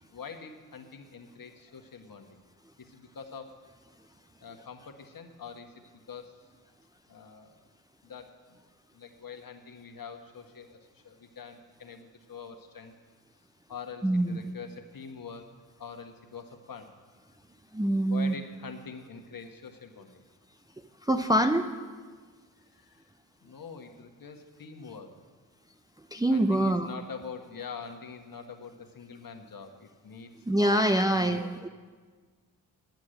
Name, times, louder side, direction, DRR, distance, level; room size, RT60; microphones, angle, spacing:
voice 1, 0.1-2.4 2.8-3.6 4.4-6.4 7.1-7.7 8.0-8.6 8.9-12.9 13.7-15.5 15.8-16.9 18.1-20.2 22.6-23.1 23.4-25.1 26.3-31.5, left 5 dB, 45° left, 5 dB, 1.6 m, -45 dB
voice 2, 14.0-14.5 17.7-18.3 21.0-21.7 26.1-26.9 30.5-31.7, right 1 dB, 10° right, 5 dB, 0.7 m, -25 dB
10.5 x 9.5 x 6.5 m, 1.5 s
hypercardioid pair, 40°, 48 cm